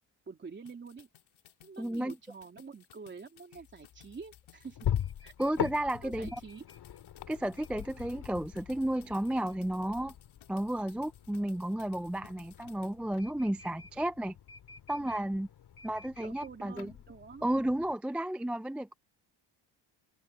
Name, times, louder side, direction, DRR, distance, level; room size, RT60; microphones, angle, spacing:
voice 1, 0.3-1.1 1.6-4.8 5.2-5.3 6.0-6.6 16.2-17.5, right 5 dB, 25° right, 3.3 m, -47 dB
sound 1, 0.7-12.9, left 12 dB, 90° left, 4.7 m, -60 dB
voice 2, 1.8-2.2 5.4-6.3 7.3-10.1 10.5-14.3 14.9-15.5 15.8-16.9 17.4-18.9, right 1 dB, 5° right, 0.3 m, -32 dB
sound 2, 3.6-17.9, left 10 dB, 55° left, 2.6 m, -42 dB
cardioid pair, 175°, 46 cm